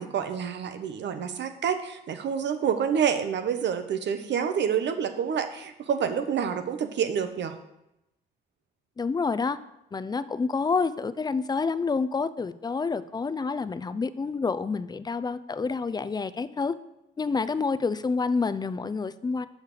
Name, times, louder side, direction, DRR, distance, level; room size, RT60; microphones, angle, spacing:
voice 1, 0.0-7.5, right 7 dB, 65° right, 9 dB, 0.9 m, -28 dB
voice 2, 9.0-9.6 9.9-16.8 17.2-19.5, left 4 dB, 20° left, 15 dB, 0.4 m, -28 dB
6.7 x 6.5 x 4.9 m, 0.88 s
cardioid pair, 90°, 20 cm